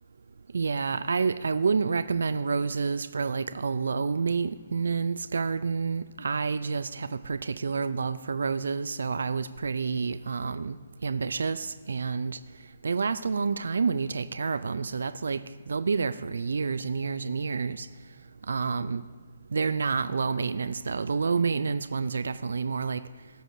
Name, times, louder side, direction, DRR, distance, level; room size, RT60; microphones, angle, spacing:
voice 1, 0.5-10.8 11.0-12.4 12.8-17.9 18.5-19.0 19.5-23.0, right 5 dB, 75° right, 13 dB, 0.3 m, -29 dB
17.0 x 6.4 x 2.6 m, 1.4 s
hypercardioid pair, 140°, 0 cm